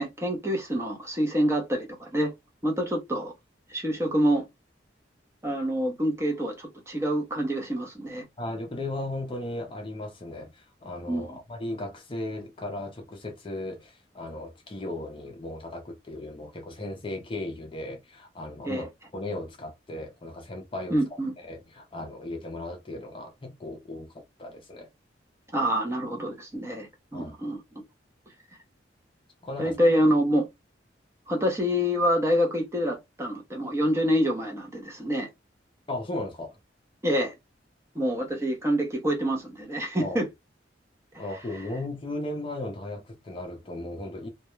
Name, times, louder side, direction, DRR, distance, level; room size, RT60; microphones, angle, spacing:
voice 1, 0.0-2.3 2.6-3.3 3.7-4.5 5.4-8.2 11.1-11.4 18.6-18.9 20.9-21.3 25.5-27.6 29.6-30.5 31.3-35.3 37.0-37.3 37.9-40.2, equal, 15° right, 0.6 m, -26 dB
voice 2, 8.4-24.9 27.1-27.4 29.4-29.8 35.9-36.6 40.0-40.2 41.2-44.3, left 1 dB, 25° left, 0.5 m, -36 dB
2.3 x 2.1 x 3.0 m
head